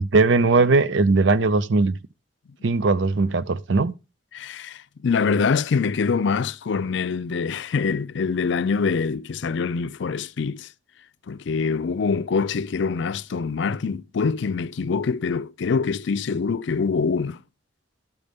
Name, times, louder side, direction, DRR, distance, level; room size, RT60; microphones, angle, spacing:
voice 1, 0.0-2.0 2.6-3.9, right 3 dB, 70° right, 0.6 m, -19 dB
voice 2, 4.3-10.7 11.3-17.4, left 5 dB, 65° left, 0.4 m, -24 dB
12.0 x 6.6 x 3.5 m
head